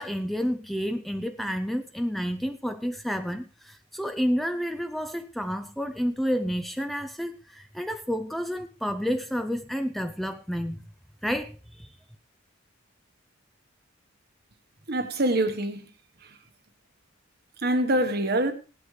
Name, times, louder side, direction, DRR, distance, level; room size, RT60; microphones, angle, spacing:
voice 1, 0.0-10.8 11.2-12.0, equal, ahead, 0.5 m, -30 dB
voice 2, 14.9-15.9 16.2-16.4 17.6-18.5, right 1 dB, 50° right, 1.3 m, -25 dB
17.0 x 11.5 x 3.3 m
head